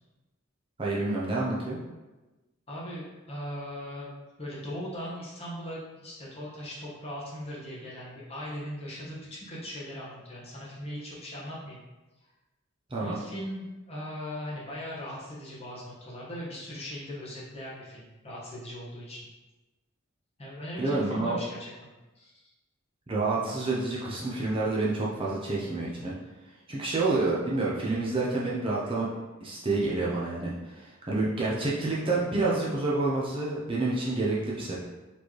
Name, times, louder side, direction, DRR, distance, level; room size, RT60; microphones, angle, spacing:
voice 1, 0.8-1.8 12.9-13.2 20.8-21.4 23.1-26.1 26.7-29.1 29.4-34.7, right 2 dB, 25° right, -5 dB, 0.6 m, -28 dB
voice 2, 2.7-4.1 4.4-11.8 13.0-19.3 20.4-21.7 22.1-22.3, equal, 30° left, -6 dB, 1.1 m, -39 dB
4.3 x 3.2 x 3.0 m, 1.1 s
head